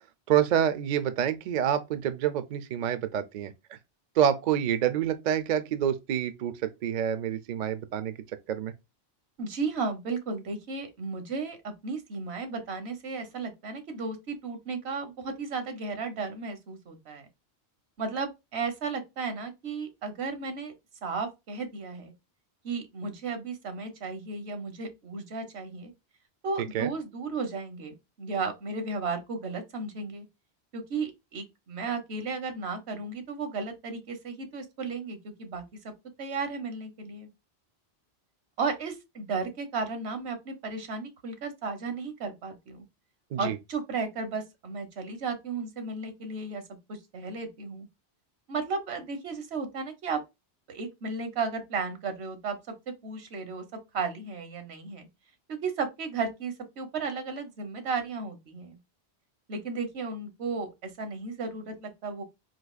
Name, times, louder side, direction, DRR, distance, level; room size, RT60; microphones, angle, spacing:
voice 1, 0.3-3.5 4.2-8.1 8.5-8.7 26.7-26.9 43.3-43.6, right 10 dB, 55° right, 0.5 m, -27 dB
voice 2, 9.4-17.3 18.0-20.7 21.0-22.1 22.6-25.9 26.4-30.2 30.7-35.9 36.2-37.3 38.6-42.8 43.4-46.6 46.9-47.9 48.5-50.2 50.7-52.6 52.9-53.6 53.9-55.1 55.5-58.8 59.5-62.2, right 4 dB, 75° right, 1.1 m, -34 dB
4.0 x 2.7 x 2.3 m
omnidirectional pair, 1.1 m